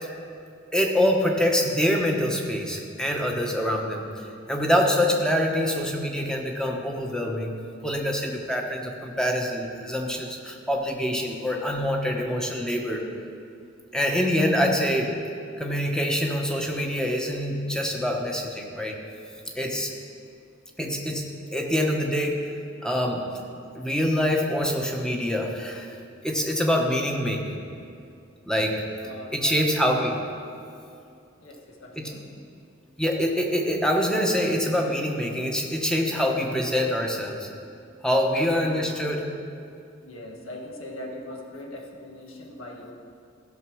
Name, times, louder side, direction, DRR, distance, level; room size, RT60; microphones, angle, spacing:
voice 1, 0.7-7.5 7.8-13.1 13.9-15.2 15.6-19.0 19.5-19.9 20.8-22.5 22.8-23.4 23.7-25.9 26.2-27.7 28.4-28.9 29.3-30.3 31.9-32.1 33.0-37.5 38.0-39.3, equal, 5° left, 1 dB, 1.1 m, -25 dB
voice 2, 29.0-29.6 29.9-30.0 31.4-32.2 38.3-38.9 40.0-42.9, left 1 dB, 85° left, 0 dB, 1.6 m, -39 dB
15.5 x 5.6 x 6.3 m, 2.5 s
head